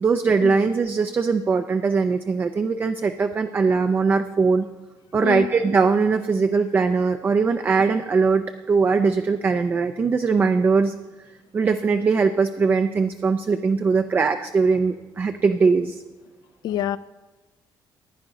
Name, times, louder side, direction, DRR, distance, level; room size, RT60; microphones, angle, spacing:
voice 1, 0.0-4.7 5.1-10.9 11.5-16.0, right 4 dB, 25° right, 8 dB, 0.4 m, -21 dB
voice 2, 16.6-17.0, left 11 dB, 65° left, 16 dB, 0.4 m, -26 dB
15.5 x 9.8 x 3.8 m, 1.1 s
cardioid pair, 160°, 8 cm